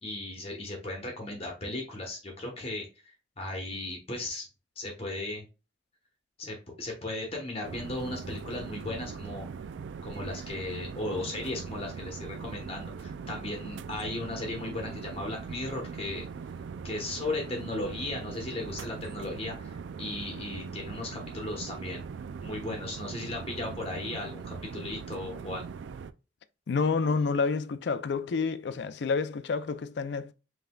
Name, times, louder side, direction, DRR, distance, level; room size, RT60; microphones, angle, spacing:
voice 1, 0.0-4.5 4.8-5.4 6.4-9.5 10.0-16.2 16.8-22.0 22.4-25.7, left 2 dB, 35° left, 1.0 m, -36 dB
sound 1, 7.6-26.1, right 5 dB, 80° right, 0.3 m, -41 dB
voice 2, 26.7-30.3, left 4 dB, 65° left, 0.4 m, -29 dB
5.4 x 3.5 x 2.2 m
head